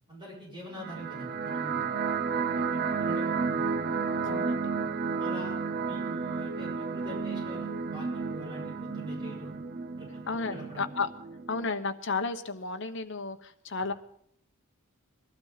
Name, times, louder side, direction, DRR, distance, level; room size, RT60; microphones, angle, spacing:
voice 1, 0.1-3.7 5.2-5.5 5.8-9.5 10.0-10.2 10.5-10.9, equal, 20° right, -4 dB, 7.0 m, -44 dB
sound 1, 0.7-11.7, right 5 dB, 45° right, 0.6 m, -32 dB
voice 2, 4.2-4.7 10.3-11.1 11.5-13.9, left 4 dB, 55° left, 8 dB, 1.1 m, -33 dB
21.0 x 12.5 x 4.1 m, 0.67 s
head